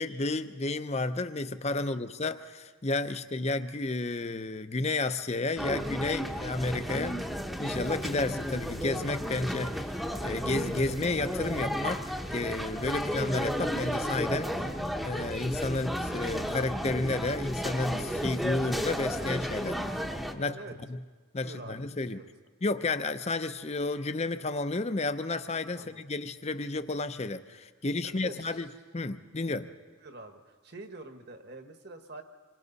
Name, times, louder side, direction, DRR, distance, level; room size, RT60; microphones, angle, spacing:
voice 1, 0.0-7.2 7.6-9.9 10.2-12.0 12.3-14.6 15.0-19.8 20.3-20.5 20.9-21.0 21.3-22.2 22.6-28.7 28.9-29.7, left 2 dB, 30° left, 11 dB, 0.6 m, -31 dB
sound 1, 5.6-20.3, equal, ahead, 0.9 m, -33 dB
voice 2, 20.4-20.7 21.4-21.8 22.1-22.2 25.7-26.0 28.0-28.7 30.0-32.2, right 3 dB, 50° right, 6 dB, 1.5 m, -45 dB
27.0 x 24.0 x 4.1 m, 1.5 s
head